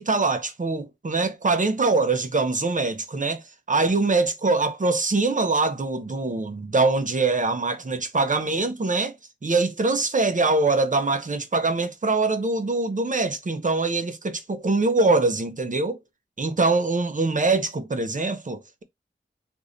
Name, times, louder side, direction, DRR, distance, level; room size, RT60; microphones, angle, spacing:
voice 1, 0.0-9.2 9.4-16.0 16.4-18.8, right 3 dB, 40° right, 0.7 m, -23 dB
3.1 x 2.6 x 2.6 m
wide cardioid pair, 55°, 20 cm